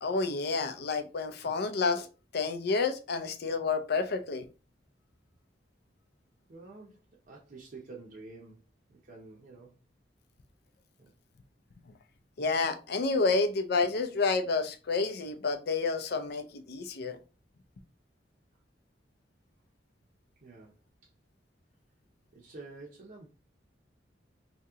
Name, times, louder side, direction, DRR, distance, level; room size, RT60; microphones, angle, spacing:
voice 1, 0.0-2.1 2.3-4.5 12.4-17.2, left 4 dB, 60° left, 0.5 m, -29 dB
voice 2, 6.5-9.8 11.0-11.1 20.4-20.8 22.3-23.3, right 3 dB, 50° right, 0.7 m, -49 dB
2.9 x 2.8 x 3.5 m
head